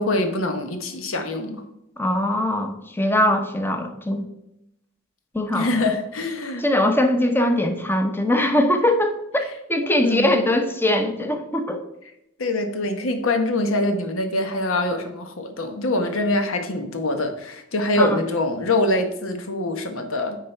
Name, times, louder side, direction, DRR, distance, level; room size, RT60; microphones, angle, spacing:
voice 1, 0.0-1.6 5.5-6.6 9.8-10.4 12.4-20.4, left 2 dB, 80° left, 6 dB, 1.0 m, -24 dB
voice 2, 2.0-4.2 5.3-5.7 6.6-9.1 9.7-11.8 18.0-18.2, left 1 dB, 10° left, 5 dB, 0.8 m, -21 dB
9.3 x 3.8 x 4.4 m, 0.84 s
head